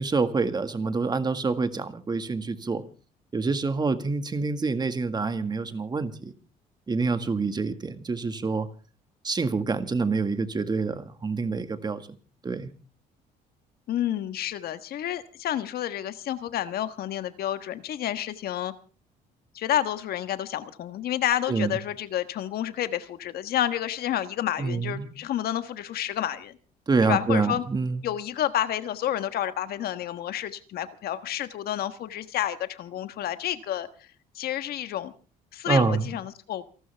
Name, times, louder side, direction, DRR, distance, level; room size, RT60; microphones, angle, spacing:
voice 1, 0.0-2.8 3.3-6.3 6.9-8.7 9.2-12.0 12.4-12.7 21.5-21.7 24.6-25.1 26.9-28.0 35.6-36.1, right 4 dB, 25° right, 9 dB, 1.8 m, -26 dB
voice 2, 13.9-18.7 19.5-26.6 27.1-27.6 28.0-33.9 34.3-35.1 35.5-36.6, left 11 dB, 65° left, 11 dB, 1.4 m, -30 dB
28.0 x 12.5 x 3.5 m, 0.37 s
cardioid pair, 110°, 17 cm